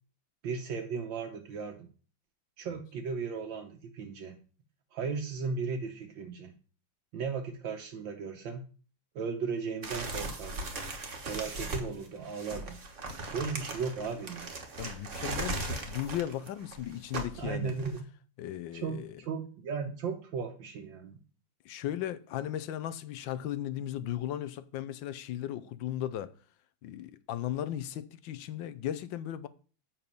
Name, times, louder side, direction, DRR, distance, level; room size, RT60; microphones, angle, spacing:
voice 1, 0.4-1.9 2.6-4.4 4.9-6.5 7.1-8.6 9.1-10.7 11.2-12.8 13.3-14.5 17.4-18.0 18.7-21.2, right 5 dB, 75° right, 1.7 m, -36 dB
sound 1, 9.8-18.0, right 2 dB, 40° right, 1.5 m, -38 dB
voice 2, 14.8-17.7 18.4-19.2 21.6-26.3 26.8-29.5, left 11 dB, 80° left, 1.4 m, -36 dB
7.5 x 6.9 x 5.3 m
omnidirectional pair, 2.1 m